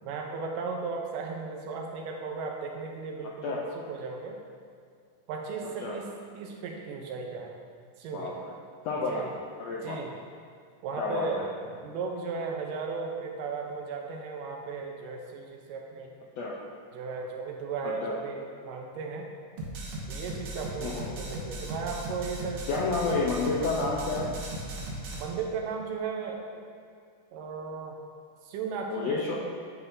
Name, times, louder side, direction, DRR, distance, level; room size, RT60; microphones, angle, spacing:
voice 1, 0.0-4.4 5.3-6.1 6.3-7.5 8.0-8.4 9.1-9.4 9.8-10.1 10.8-16.1 16.9-19.3 20.1-23.2 25.2-26.6 27.3-28.0 28.4-29.4, right 4 dB, 85° right, 1 dB, 2.4 m, -36 dB
voice 2, 5.6-6.0 8.1-8.3 8.8-9.3 9.6-10.0 11.0-11.5 16.4-16.5 17.8-18.1 20.8-21.1 22.7-24.3 28.9-29.4, left 3 dB, 85° left, -4 dB, 1.5 m, -30 dB
sound 1, 19.6-25.2, right 1 dB, 70° right, 1.5 m, -37 dB
9.8 x 5.9 x 2.7 m, 2.2 s
omnidirectional pair, 3.7 m